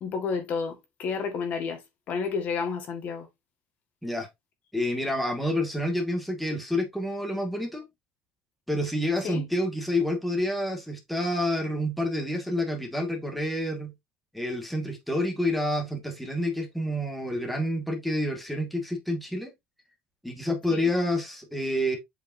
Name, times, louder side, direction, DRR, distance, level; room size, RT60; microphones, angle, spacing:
voice 1, 0.0-3.3 9.2-9.5 20.7-20.9, left 5 dB, 40° left, 1.8 m, -31 dB
voice 2, 4.7-7.8 8.7-13.9 14.3-19.5 20.2-22.0, left 1 dB, ahead, 1.9 m, -28 dB
8.1 x 5.2 x 2.8 m
cardioid pair, 155°, 4 cm